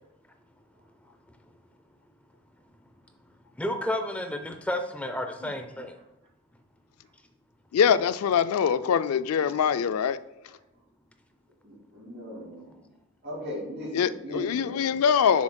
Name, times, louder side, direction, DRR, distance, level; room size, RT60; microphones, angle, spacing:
voice 1, 3.6-6.0, left 1 dB, 5° left, 6 dB, 0.4 m, -31 dB
voice 2, 7.7-10.2 13.9-15.4, left 7 dB, 80° left, 14 dB, 0.3 m, -23 dB
voice 3, 11.6-12.7 13.2-15.0, equal, 50° right, -9 dB, 2.1 m, -38 dB
7.1 x 6.2 x 2.2 m, 0.93 s
head